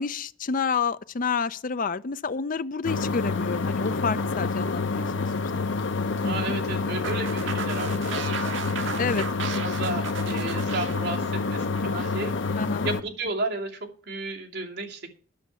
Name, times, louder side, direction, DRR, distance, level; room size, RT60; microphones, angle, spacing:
voice 1, 0.0-5.3 6.2-6.5 9.0-9.3 12.6-12.9, left 5 dB, 45° left, 0.5 m, -29 dB
sound 1, 2.8-13.0, left 4 dB, 80° left, 0.7 m, -28 dB
voice 2, 6.2-9.2 9.6-12.3 12.8-13.8 14.1-15.1, right 2 dB, 65° right, 2.7 m, -33 dB
sound 2, 7.0-12.2, right 5 dB, 80° right, 1.1 m, -35 dB
10.5 x 6.6 x 8.3 m
head